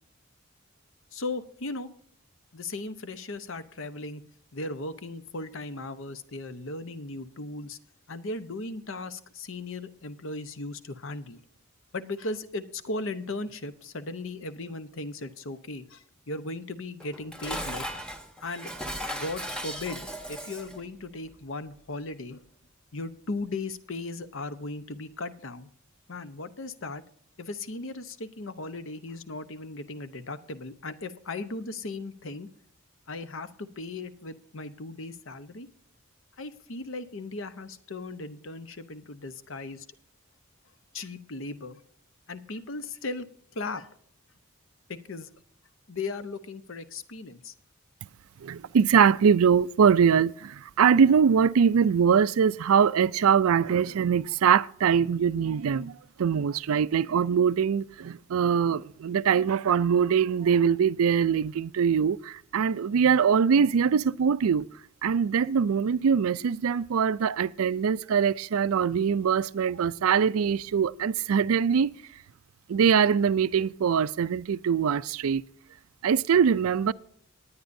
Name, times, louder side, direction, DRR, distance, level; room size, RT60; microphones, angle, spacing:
voice 1, 1.1-1.9 2.5-4.2 4.5-7.8 8.1-11.4 11.9-17.9 18.4-18.7 19.1-22.4 22.9-25.7 26.1-27.0 27.4-32.5 33.1-35.7 36.4-39.9 40.9-41.8 42.3-43.3 43.5-43.9 44.9-45.3 45.9-47.5, left 2 dB, 65° left, 0.8 m, -37 dB
Dishes pots and pans, 17.0-20.8, equal, 5° left, 1.0 m, -36 dB
voice 2, 48.4-64.7 65.0-71.9 72.7-75.4 76.0-76.9, right 7 dB, 80° right, 0.4 m, -23 dB
19.5 x 9.7 x 2.6 m
head